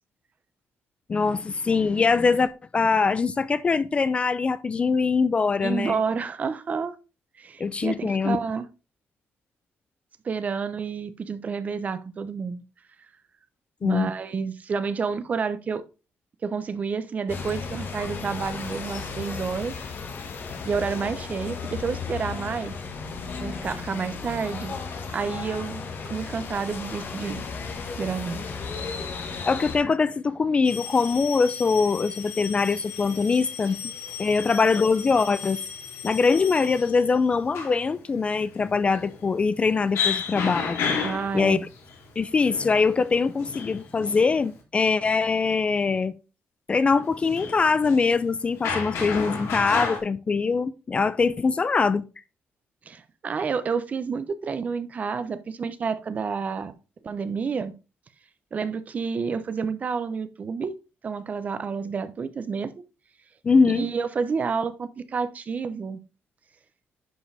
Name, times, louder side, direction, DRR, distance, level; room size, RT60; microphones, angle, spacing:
voice 1, 1.1-6.0 7.6-8.4 13.8-14.1 29.5-33.8 34.2-35.6 36.0-40.8 41.3-41.6 42.2-46.1 46.7-52.0 63.4-63.9, left 4 dB, 25° left, 0.4 m, -23 dB
voice 2, 5.6-6.9 7.4-8.7 10.2-12.6 13.8-15.8 16.4-19.7 20.6-22.7 23.4-24.7 25.1-27.4 28.0-28.4 41.0-41.6 52.9-56.7 57.0-57.7 58.5-60.7 61.0-62.7 63.7-66.0, right 5 dB, 35° right, 0.7 m, -29 dB
traffic heavy street cuba, 17.3-29.8, left 5 dB, 50° left, 1.3 m, -34 dB
Male speech man speaking, 30.6-44.6 47.1-50.0, left 6 dB, 85° left, 2.8 m, -33 dB
11.0 x 4.9 x 3.3 m
cardioid pair, 150°, 5 cm